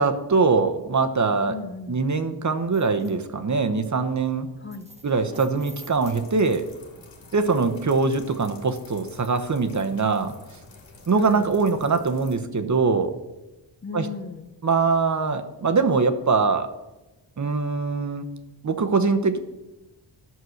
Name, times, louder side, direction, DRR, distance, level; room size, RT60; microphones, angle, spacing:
voice 1, 0.0-1.5 1.9-4.5 5.0-6.7 7.3-10.3 11.1-13.1 13.9-14.1 14.6-16.7 17.4-18.3 18.6-19.4, right 4 dB, 40° right, 8 dB, 1.0 m, -22 dB
voice 2, 1.5-2.0 4.6-4.9 7.6-7.8 11.2-11.5 13.8-14.5, left 4 dB, 25° left, 8 dB, 0.6 m, -36 dB
Chain Drag Floor, 2.7-3.2 4.7-6.8 7.5-7.7 8.2-8.3, right 1 dB, 15° right, 1.2 m, -46 dB
sound 1, 5.9-12.4, left 3 dB, 85° left, 2.5 m, -49 dB
11.0 x 6.2 x 6.4 m, 1.0 s
wide cardioid pair, 100°, 45 cm